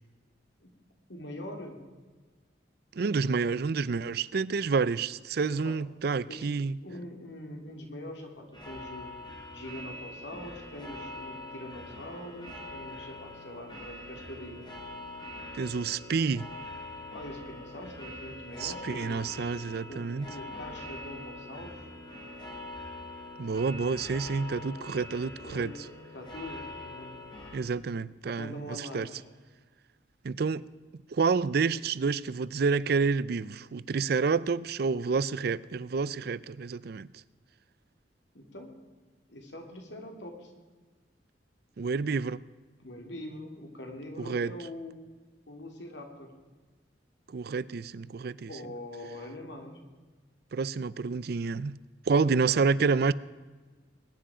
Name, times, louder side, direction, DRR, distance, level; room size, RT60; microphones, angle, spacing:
voice 1, 1.1-1.8 5.5-5.8 6.3-6.5 6.8-9.1 9.5-14.6 17.1-19.3 19.9-21.9 25.3-27.1 28.3-29.2 38.3-38.7 39.3-40.5 42.8-44.9 45.5-46.3 48.5-49.8 52.1-52.7, left 1 dB, 75° left, 2.8 m, -43 dB
voice 2, 3.0-6.8 15.5-16.5 18.6-20.3 23.4-25.7 27.5-29.1 30.2-30.6 31.1-37.1 41.8-42.4 44.2-44.5 47.3-48.5 50.5-51.8 52.1-53.1, right 4 dB, 60° right, 0.4 m, -29 dB
sound 1, 8.5-27.6, left 1 dB, 25° left, 3.8 m, -43 dB
21.0 x 10.0 x 5.0 m
head